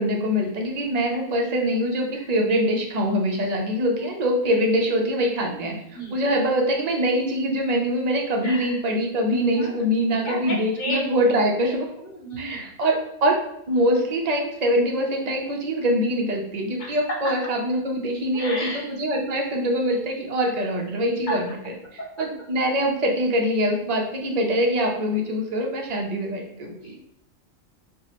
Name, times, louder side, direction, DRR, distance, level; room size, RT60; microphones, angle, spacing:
voice 1, 0.0-5.8 6.1-11.9 12.4-13.4 13.7-21.6 22.2-26.7, equal, 55° right, 1 dB, 0.4 m, -23 dB
voice 2, 8.4-8.8 9.6-9.9 10.2-11.0 12.0-12.7 16.8-17.0 18.3-18.9 21.3-21.4 26.7-27.0, equal, 45° left, -2 dB, 0.8 m, -33 dB
4.4 x 2.0 x 2.9 m, 0.75 s
omnidirectional pair, 1.4 m